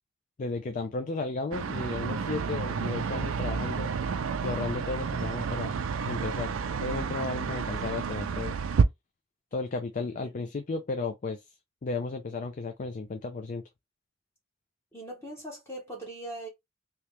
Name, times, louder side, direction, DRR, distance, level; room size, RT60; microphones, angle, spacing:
voice 1, 0.4-3.9 4.4-5.8 6.1-6.5 6.8-8.6 9.5-11.4 11.8-13.6, left 3 dB, 40° left, 0.4 m, -34 dB
sound 1, 1.5-8.8, right 5 dB, 90° right, 0.4 m, -30 dB
voice 2, 14.9-16.5, right 1 dB, 15° left, 1.0 m, -40 dB
3.1 x 2.8 x 3.2 m
head